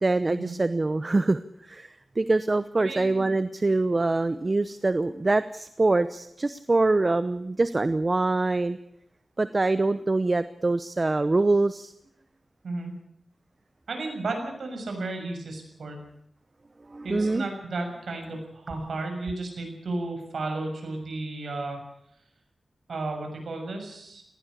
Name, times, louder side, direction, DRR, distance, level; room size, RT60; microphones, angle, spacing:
voice 1, 0.0-8.8 9.4-11.9 16.9-17.4, right 2 dB, 35° right, 13 dB, 0.8 m, -24 dB
voice 2, 2.8-3.3 12.6-12.9 13.9-16.0 17.0-21.8 22.9-24.2, right 2 dB, 85° right, 4 dB, 6.8 m, -33 dB
19.5 x 17.0 x 8.5 m, 0.74 s
wide cardioid pair, 90°, 0 cm